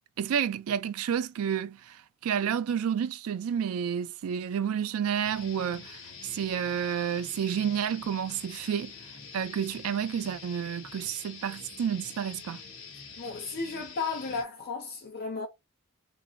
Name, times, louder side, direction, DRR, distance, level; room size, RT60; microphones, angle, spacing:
voice 1, 0.2-8.9 9.3-12.6, right 8 dB, 90° right, 0.3 m, -30 dB
sound 1, 5.2-14.4, left 5 dB, 70° left, 1.1 m, -46 dB
voice 2, 13.2-15.5, left 4 dB, 50° left, 0.7 m, -34 dB
2.9 x 2.6 x 3.3 m
head